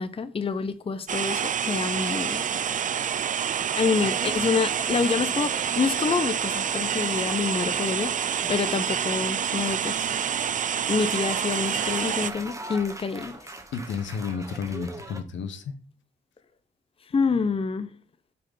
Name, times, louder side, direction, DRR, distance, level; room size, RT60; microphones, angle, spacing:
voice 1, 0.0-2.5 3.8-10.0 10.9-13.4 17.1-17.9, left 5 dB, 30° left, 0.6 m, -27 dB
sound 1, 1.1-12.3, right 8 dB, 40° right, 0.4 m, -27 dB
sound 2, 1.7-15.2, right 2 dB, 15° right, 1.2 m, -44 dB
voice 2, 13.7-15.7, left 6 dB, 75° left, 1.0 m, -32 dB
6.8 x 3.6 x 5.5 m
cardioid pair, 70°, 20 cm